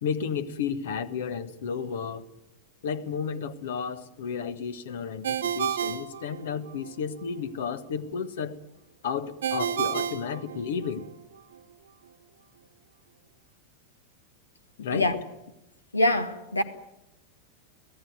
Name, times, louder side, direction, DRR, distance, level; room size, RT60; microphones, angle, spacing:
voice 1, 0.0-2.2 2.8-8.6 9.0-11.1 14.8-15.1, left 6 dB, 60° left, 1.4 m, -32 dB
Ringtone, 5.2-6.9 9.4-11.1, right 9 dB, 65° right, 1.2 m, -30 dB
voice 2, 15.9-16.6, left 1 dB, 80° left, 1.9 m, -24 dB
24.5 x 17.0 x 9.4 m
figure-of-eight pair, 90°, 0 cm